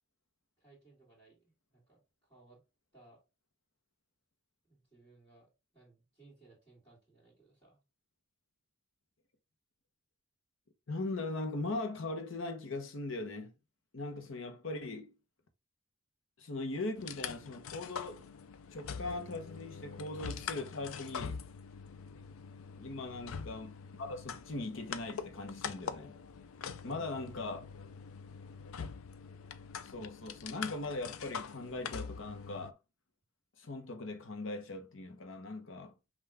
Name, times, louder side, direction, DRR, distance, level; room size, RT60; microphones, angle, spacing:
voice 1, 0.6-2.6 2.9-3.2 4.6-7.8 22.1-22.3 26.6-27.1, right 3 dB, 20° left, 2.0 m, -62 dB
voice 2, 10.9-13.5 13.9-15.1 16.4-18.2 18.7-21.4 22.2-22.3 22.8-26.2 26.8-27.7 29.8-32.8 33.6-36.0, left 2 dB, 70° left, 0.9 m, -40 dB
sound 1, 17.0-32.7, left 6 dB, 85° left, 0.4 m, -44 dB
5.6 x 2.4 x 3.4 m
head